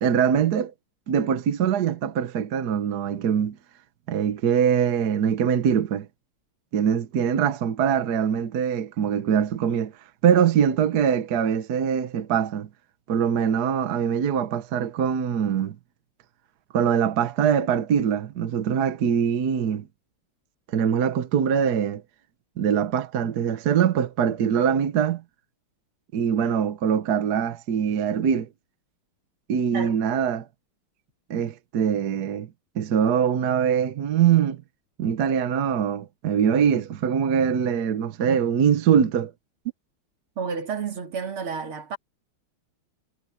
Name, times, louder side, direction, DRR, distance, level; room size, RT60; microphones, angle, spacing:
voice 1, 0.0-0.7 1.1-3.6 4.1-6.1 6.7-9.9 10.2-12.7 13.1-15.8 16.7-19.8 20.7-22.0 22.6-25.2 26.1-28.5 29.5-30.5 31.3-32.5 32.7-34.6 35.0-39.3, right 8 dB, 55° right, 1.3 m, -23 dB
voice 2, 40.4-42.0, right 5 dB, 80° right, 3.4 m, -31 dB
omnidirectional pair, 2.3 m